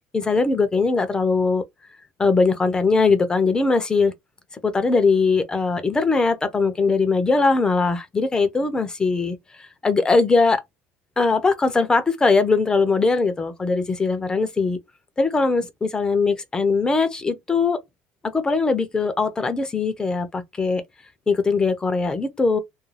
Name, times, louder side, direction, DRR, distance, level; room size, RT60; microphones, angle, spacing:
voice 1, 0.1-1.6 2.2-4.1 4.6-10.6 11.2-14.8 15.2-17.8 18.3-20.8 21.3-22.6, left 4 dB, 20° left, 0.5 m, -20 dB
2.4 x 2.1 x 3.1 m
cardioid pair, 115°, 4 cm